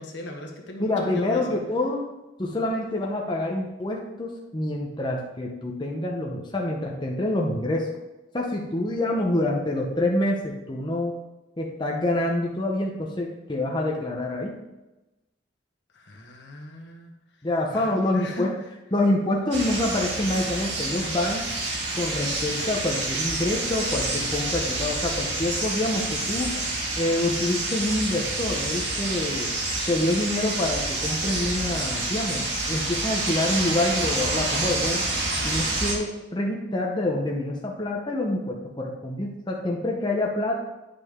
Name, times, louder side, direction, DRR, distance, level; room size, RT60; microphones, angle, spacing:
voice 1, 0.0-1.6 15.9-17.1 17.7-18.5, left 1 dB, 70° left, 1 dB, 1.4 m, -37 dB
voice 2, 0.8-2.0 2.4-7.9 8.3-11.2 11.6-14.6 17.4-18.5 18.9-21.4 21.9-26.5 27.0-29.5 29.9-35.0 35.4-40.5, left 1 dB, 25° left, -1 dB, 0.8 m, -26 dB
sound 1, 19.5-35.9, right 2 dB, 65° right, 1.8 m, -28 dB
10.0 x 5.5 x 3.7 m, 1.0 s
head